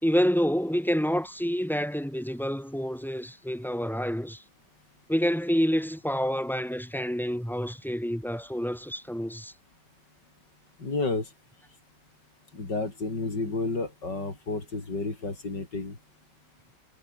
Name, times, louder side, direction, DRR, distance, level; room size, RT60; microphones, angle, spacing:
voice 1, 0.0-4.4 5.1-9.5, equal, ahead, 3.3 m, -28 dB
voice 2, 10.8-11.3 12.5-16.0, left 3 dB, 65° left, 5.4 m, -31 dB
omnidirectional pair, 2.0 m